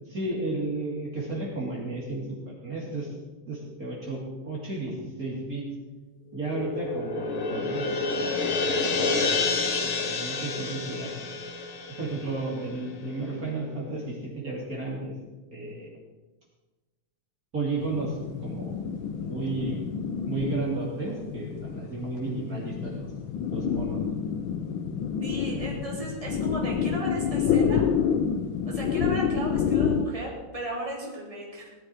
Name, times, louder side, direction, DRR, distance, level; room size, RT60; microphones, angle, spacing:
voice 1, 0.1-3.1 3.5-5.7 6.3-8.3 8.6-8.7 9.0-11.3 11.9-15.1 15.5-15.9 17.5-18.7 19.2-19.8 20.3-23.1 23.5-24.0, right 2 dB, 40° right, -4 dB, 3.5 m, -33 dB
sound 1, 6.3-12.9, left 4 dB, 90° left, 2.7 m, -29 dB
sound 2, 17.8-30.1, left 7 dB, 75° left, 1.6 m, -28 dB
voice 2, 25.2-27.9 28.7-31.7, right 1 dB, 15° right, -3 dB, 3.8 m, -35 dB
18.5 x 12.0 x 5.0 m, 1.2 s
omnidirectional pair, 2.3 m